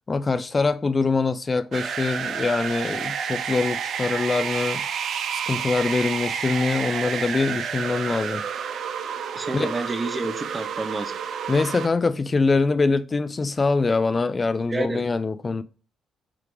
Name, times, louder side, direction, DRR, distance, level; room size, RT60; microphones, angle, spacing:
voice 1, 0.1-4.8 5.3-8.4 9.5-9.7 11.5-15.6, left 3 dB, 30° left, 0.4 m, -24 dB
sound 1, 1.7-11.9, right 7 dB, 65° right, 0.6 m, -30 dB
voice 2, 9.3-11.1 14.7-15.0, right 2 dB, 25° right, 1.0 m, -29 dB
8.4 x 3.3 x 3.3 m
cardioid pair, 90°, 0 cm